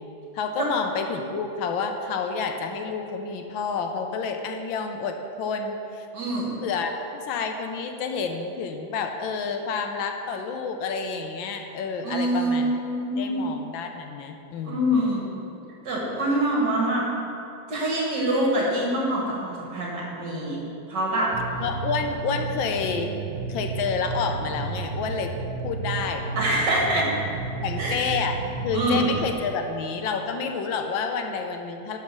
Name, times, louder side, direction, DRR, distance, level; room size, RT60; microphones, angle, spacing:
voice 1, 0.3-6.1 6.6-6.9 7.3-12.7 13.2-15.0 21.6-23.1 23.5-25.4 25.6-27.2 27.6-32.0, left 5 dB, 80° left, 5 dB, 1.4 m, -29 dB
voice 2, 6.1-6.5 12.0-13.5 14.7-15.4 15.8-17.1 17.7-20.6 20.9-21.3 26.4-27.1 27.8-28.0 28.7-29.0, right 1 dB, 55° right, -4 dB, 2.3 m, -25 dB
sound 1, 21.3-29.3, right 4 dB, 90° right, 1.5 m, -32 dB
11.5 x 4.2 x 6.0 m, 2.7 s
omnidirectional pair, 2.2 m